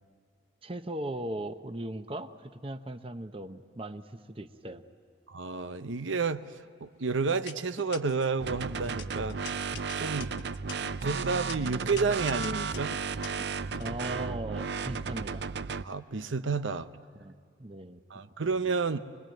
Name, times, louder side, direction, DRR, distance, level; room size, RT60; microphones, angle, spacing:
voice 1, 0.6-4.8 13.8-15.4 17.2-17.3 17.6-18.0, right 1 dB, 30° right, 8 dB, 0.8 m, -38 dB
voice 2, 5.3-6.4 6.8-9.4 10.0-10.3 11.0-12.9 15.8-16.9 18.1-19.0, right 4 dB, 90° right, 10 dB, 0.8 m, -30 dB
sound 1, 6.4-6.8 7.3-8.3 8.8-13.8, left 6 dB, 65° left, 1.5 m, -44 dB
sound 2, 8.4-15.8, right 5 dB, 60° right, 0.5 m, -34 dB
25.0 x 22.0 x 9.1 m, 2.2 s
head